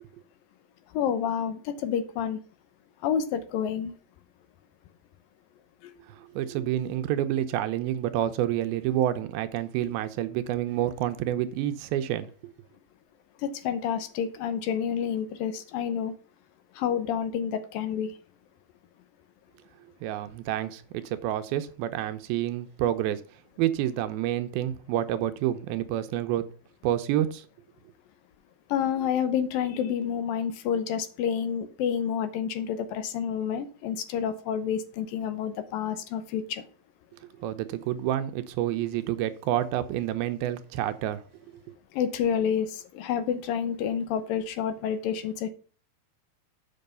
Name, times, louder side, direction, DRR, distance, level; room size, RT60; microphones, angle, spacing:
voice 1, 0.9-2.4 3.0-3.9 5.8-5.9 13.4-16.1 16.8-18.1 28.7-36.6 41.9-45.5, left 8 dB, 75° left, 2.5 m, -29 dB
voice 2, 6.2-12.5 20.0-23.2 23.6-26.4 26.8-27.5 37.4-41.2, right 12 dB, 85° right, 2.6 m, -28 dB
7.7 x 5.4 x 6.8 m
omnidirectional pair, 4.3 m